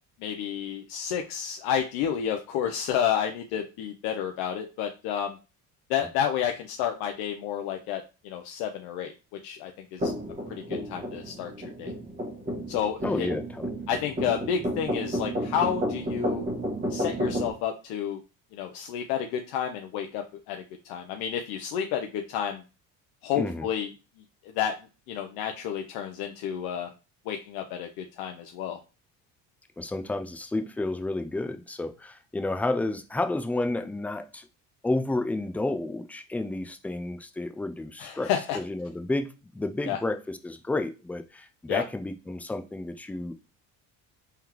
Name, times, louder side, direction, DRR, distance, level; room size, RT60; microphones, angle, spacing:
voice 1, 0.2-5.4 5.9-9.1 9.4-10.1 10.5-10.6 10.9-11.9 12.7-13.3 13.9-16.4 16.9-18.2 18.5-22.6 23.2-23.9 24.6-24.7 25.1-26.9 27.3-28.8 38.0-38.6 39.9-40.0 41.7-41.8, left 9 dB, 90° left, 4 dB, 0.6 m, -30 dB
sound 1, 10.0-17.5, equal, 20° right, 1.5 m, -32 dB
voice 2, 13.0-13.7 23.4-23.7 29.8-34.5 34.8-43.3, left 2 dB, 5° left, 7 dB, 0.4 m, -31 dB
3.7 x 3.4 x 2.9 m, 0.30 s
cardioid pair, 100°, 37 cm